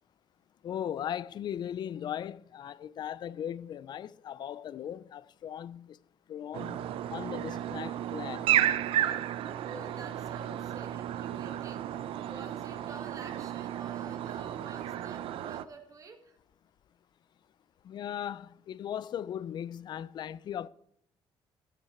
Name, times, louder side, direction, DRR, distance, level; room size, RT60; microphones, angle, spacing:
voice 1, 0.6-6.0 6.3-8.5 17.8-20.7, left 10 dB, 50° left, 0.4 m, -38 dB
sound 1, 6.5-15.6, right 12 dB, 75° right, 0.6 m, -33 dB
voice 2, 9.6-16.4, right 4 dB, 35° right, 1.6 m, -49 dB
14.0 x 8.0 x 4.3 m
cardioid pair, 115°, 10 cm